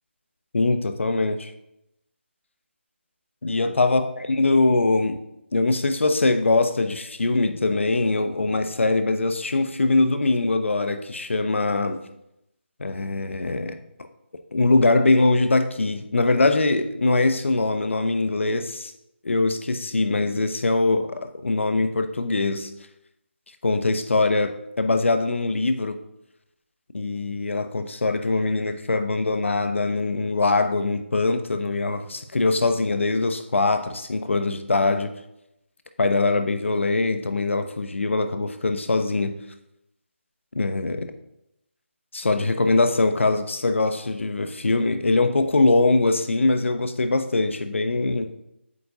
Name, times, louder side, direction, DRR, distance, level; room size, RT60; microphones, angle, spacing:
voice 1, 0.5-1.5 3.4-4.1 4.4-5.2 5.5-12.0 12.8-13.8 14.5-18.9 19.2-22.7 23.6-26.0 26.9-35.1 36.0-39.4 40.6-41.1 42.1-48.3, left 3 dB, 75° left, 8 dB, 0.7 m, -22 dB
8.1 x 4.7 x 2.7 m, 0.85 s
figure-of-eight pair, 180°, 7 cm